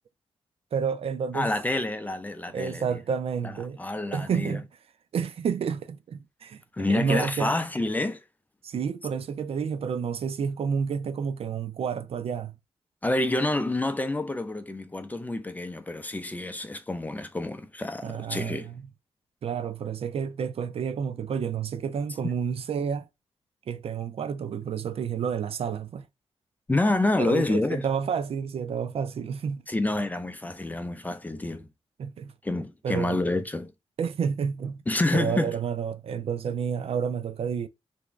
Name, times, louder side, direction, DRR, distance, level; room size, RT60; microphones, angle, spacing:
voice 1, 0.7-1.5 2.5-3.8 4.1-4.7 5.1-6.6 6.9-7.5 8.6-12.5 18.0-18.8 19.4-23.1 23.7-26.0 27.2-29.6 32.0-32.3 32.8-33.2 34.0-34.8 35.1-37.7, right 7 dB, 65° right, 0.4 m, -30 dB
voice 2, 1.3-2.8 3.8-4.6 6.7-8.2 13.0-18.7 26.7-27.8 29.7-31.7 32.4-33.7 34.9-35.5, left 2 dB, 15° left, 0.4 m, -28 dB
2.9 x 2.6 x 3.3 m
cardioid pair, 100°, 11 cm